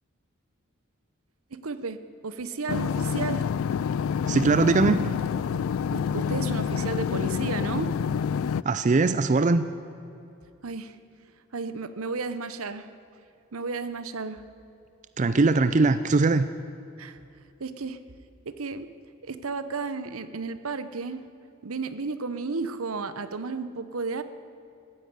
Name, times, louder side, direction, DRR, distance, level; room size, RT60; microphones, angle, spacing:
voice 1, 1.5-3.4 5.8-8.0 10.6-11.0 11.5-12.9 13.5-14.5 17.0-17.2 17.6-18.0 18.4-18.9 19.2-21.3 21.6-24.2, right 4 dB, 80° right, 12 dB, 0.9 m, -33 dB
sound 1, 2.7-8.6, left 7 dB, 70° left, 0.3 m, -27 dB
voice 2, 4.3-5.0 8.6-9.6 15.2-16.5, right 3 dB, 35° right, 12 dB, 0.4 m, -21 dB
15.5 x 10.0 x 9.3 m, 2.7 s
head